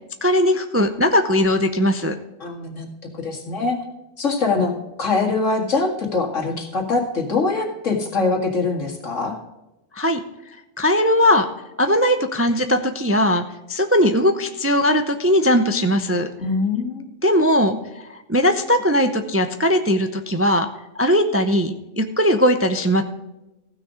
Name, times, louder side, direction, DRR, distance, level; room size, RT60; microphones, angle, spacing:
voice 1, 0.2-2.2 9.9-10.2 10.8-11.5 11.8-13.4 13.7-16.3 17.2-20.7 21.0-23.0, equal, 15° right, 8 dB, 0.5 m, -19 dB
voice 2, 2.4-2.9 3.2-3.8 4.2-4.7 5.0-9.4 16.4-17.1, left 3 dB, 75° left, 2 dB, 2.3 m, -23 dB
15.5 x 6.4 x 5.0 m, 0.97 s
omnidirectional pair, 1.3 m